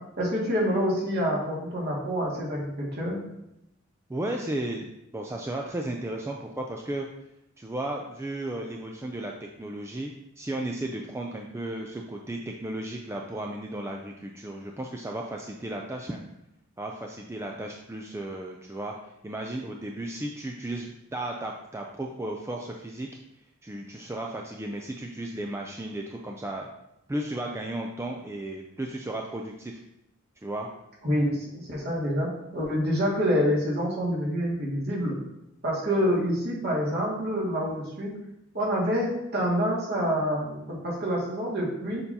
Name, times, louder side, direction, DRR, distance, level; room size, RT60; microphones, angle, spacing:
voice 1, 0.2-3.2 31.0-32.3 32.5-35.2 35.6-38.1 38.5-42.0, equal, 50° right, -5 dB, 2.1 m, -27 dB
voice 2, 4.1-4.9 5.1-7.1 7.6-16.2 16.8-23.1 23.6-26.7 27.1-29.8 30.4-30.7, right 1 dB, 15° right, 1 dB, 0.4 m, -34 dB
6.6 x 5.3 x 2.8 m, 0.85 s
head